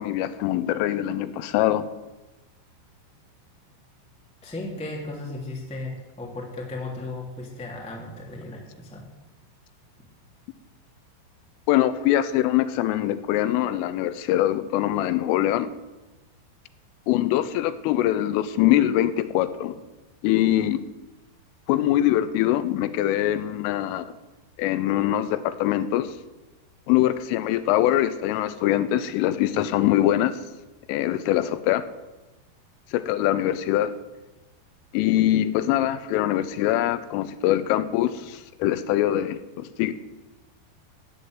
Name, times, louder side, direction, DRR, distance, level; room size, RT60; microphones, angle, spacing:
voice 1, 0.0-1.9 11.7-15.7 17.1-19.8 20.2-20.8 21.7-24.1 24.6-26.1 26.9-30.3 30.9-31.8 32.9-33.9 34.9-39.9, left 13 dB, 85° left, 13 dB, 3.2 m, -23 dB
voice 2, 4.4-9.0, left 2 dB, 5° left, -1 dB, 1.1 m, -35 dB
14.5 x 9.4 x 7.9 m, 1.1 s
omnidirectional pair, 5.8 m